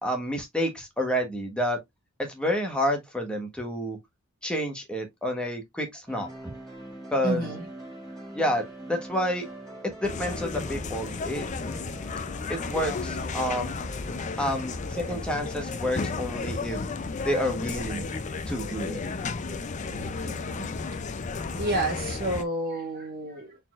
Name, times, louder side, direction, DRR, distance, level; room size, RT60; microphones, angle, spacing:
voice 1, 0.0-1.8 2.2-4.0 4.4-6.3 7.1-7.5 8.3-9.4 10.0-11.5 12.5-13.7 14.4-16.8 17.2-18.1 18.5-19.0, equal, 5° left, 1.1 m, -29 dB
sound 1, 6.1-18.2, right 1 dB, 20° right, 2.0 m, -45 dB
voice 2, 7.2-7.6 19.9-20.7 21.6-23.6, right 2 dB, 45° right, 1.6 m, -31 dB
sound 2, 10.0-22.4, left 4 dB, 35° left, 0.5 m, -33 dB
4.1 x 4.1 x 2.4 m
head